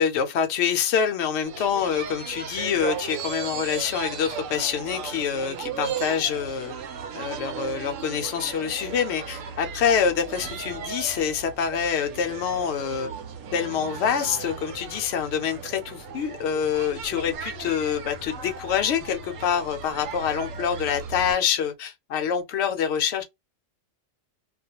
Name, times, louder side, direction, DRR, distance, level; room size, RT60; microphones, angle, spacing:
voice 1, 0.0-6.7 7.1-13.1 13.5-23.2, left 7 dB, 65° left, 0.8 m, -26 dB
sound 1, 1.4-21.4, right 6 dB, 80° right, 1.0 m, -36 dB
2.4 x 2.2 x 2.8 m
omnidirectional pair, 1.3 m